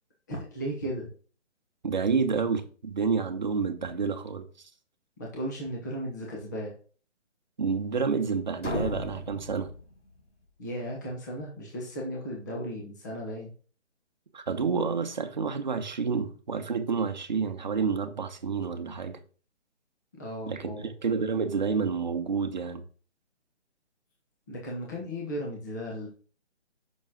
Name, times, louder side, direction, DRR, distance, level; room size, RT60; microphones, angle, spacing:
voice 1, 0.3-1.1 5.2-6.7 10.6-13.5 20.1-20.9 24.5-26.1, equal, 15° left, 1.2 m, -35 dB
voice 2, 1.8-4.7 7.6-9.7 14.3-19.2 20.5-20.7 21.0-22.8, right 5 dB, 40° right, 1.1 m, -29 dB
sound 1, 8.6-10.5, left 1 dB, 80° left, 4.2 m, -36 dB
8.5 x 6.4 x 3.7 m
hypercardioid pair, 175°, 36 cm